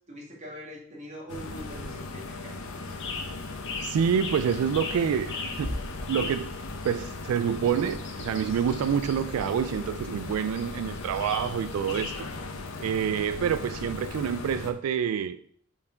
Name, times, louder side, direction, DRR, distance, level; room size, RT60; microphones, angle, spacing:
voice 1, 0.1-2.5 6.2-6.3, equal, 35° right, 1.9 m, -43 dB
sound 1, 1.3-14.7, left 3 dB, 80° left, 0.9 m, -38 dB
sound 2, 2.9-12.4, left 3 dB, 60° left, 1.3 m, -39 dB
voice 2, 3.8-5.8 6.1-6.5 6.8-12.3 12.8-15.4, right 8 dB, 90° right, 0.3 m, -27 dB
7.2 x 4.5 x 4.4 m
head